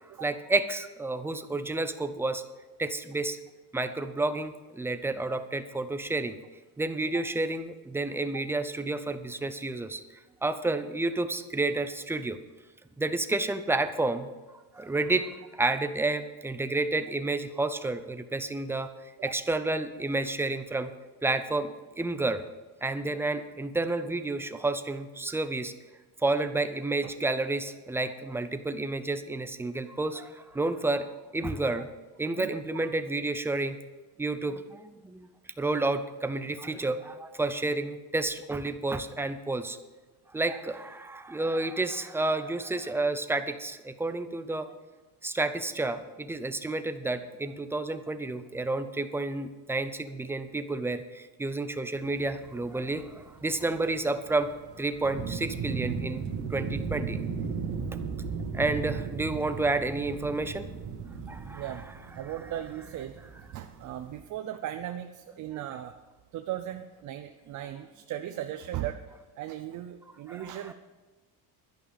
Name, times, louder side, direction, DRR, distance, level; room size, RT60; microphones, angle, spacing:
voice 1, 0.2-2.4 2.8-3.4 3.7-6.4 6.8-10.0 10.4-12.4 13.0-14.3 14.7-15.3 15.6-18.9 19.2-20.9 21.2-22.4 22.8-25.7 26.2-31.9 32.2-33.8 34.2-35.3 35.6-39.8 40.3-44.7 45.2-54.5 54.8-56.2 56.5-57.2 58.5-60.7 61.3-61.7 70.3-70.7, right 2 dB, 5° right, 10 dB, 0.4 m, -30 dB
sound 1, 51.9-64.2, right 5 dB, 90° right, 1.8 m, -37 dB
voice 2, 61.5-61.9 62.2-63.2 63.5-66.0 66.3-69.0 69.4-70.7, right 12 dB, 50° right, 7 dB, 0.6 m, -37 dB
11.5 x 11.0 x 5.2 m, 1.3 s
cardioid pair, 160°, 39 cm